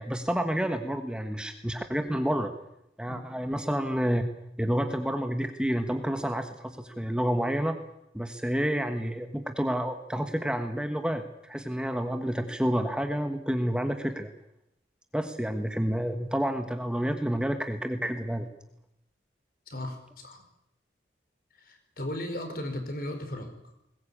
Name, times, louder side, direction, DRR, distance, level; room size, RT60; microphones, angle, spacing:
voice 1, 0.0-2.5 3.0-4.2 4.6-7.8 8.1-14.3 15.1-18.5, equal, 5° right, 6 dB, 1.3 m, -29 dB
voice 2, 19.7-20.4 21.6-23.5, left 1 dB, 55° left, 6 dB, 4.6 m, -36 dB
21.0 x 19.5 x 8.7 m, 0.82 s
head